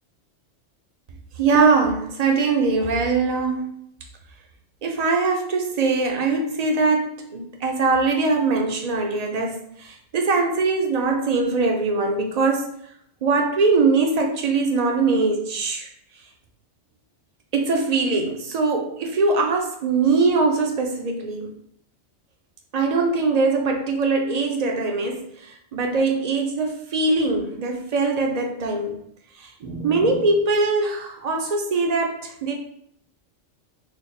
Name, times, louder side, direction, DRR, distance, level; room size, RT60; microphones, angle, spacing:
voice 1, 1.4-3.8 4.8-12.7 13.2-15.9 17.5-21.5 22.7-28.9 29.6-32.5, right 3 dB, 50° right, 2 dB, 0.5 m, -22 dB
3.3 x 2.0 x 4.1 m, 0.70 s
omnidirectional pair, 1.2 m